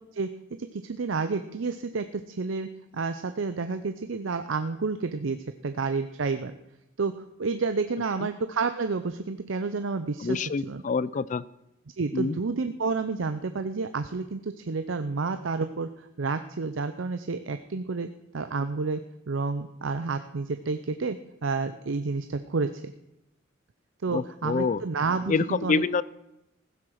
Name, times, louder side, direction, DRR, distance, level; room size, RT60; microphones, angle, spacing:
voice 1, 0.6-5.4 5.6-6.5 7.0-7.1 7.4-10.8 12.0-15.9 16.2-18.1 18.3-19.0 19.3-22.7 24.0-25.8, right 4 dB, 70° right, 10 dB, 0.6 m, -30 dB
voice 2, 10.2-11.4 12.1-12.4 24.1-24.8 25.3-26.0, left 4 dB, 40° left, 19 dB, 0.4 m, -26 dB
15.5 x 7.7 x 6.4 m, 0.87 s
head